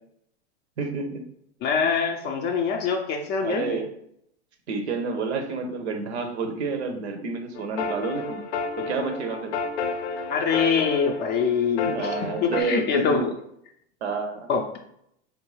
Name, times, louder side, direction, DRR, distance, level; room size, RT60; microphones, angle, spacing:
voice 1, 0.8-1.3 3.4-3.9 4.7-8.4 8.8-9.5 11.8-13.3 14.0-14.5, right 4 dB, 90° right, 6 dB, 0.8 m, -29 dB
voice 2, 1.6-3.8 10.3-13.3 14.5-14.8, left 6 dB, 35° left, 2 dB, 0.4 m, -24 dB
sound 1, 7.6-12.6, left 5 dB, 80° left, 0.6 m, -31 dB
4.2 x 2.3 x 3.1 m, 0.74 s
hypercardioid pair, 120°, 32 cm